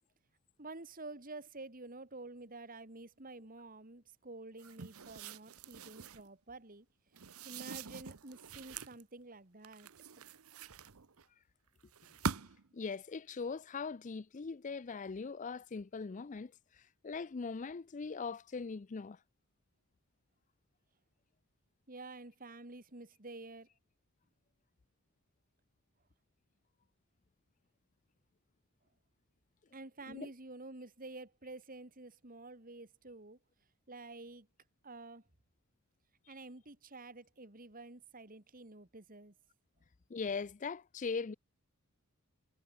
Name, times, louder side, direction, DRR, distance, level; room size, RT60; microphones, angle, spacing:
voice 1, 0.6-6.9 7.4-9.9 21.9-23.7 29.7-33.4 33.9-34.5 34.8-35.2 36.3-39.3, right 2 dB, 40° right, 2.5 m, -50 dB
sound 1, 4.6-6.3 7.1-9.0 9.6-11.2 11.9-12.7, right 5 dB, 75° right, 1.0 m, -44 dB
voice 2, 12.7-16.5 17.0-19.2 30.1-30.3 40.1-41.3, left 4 dB, 35° left, 0.4 m, -40 dB
head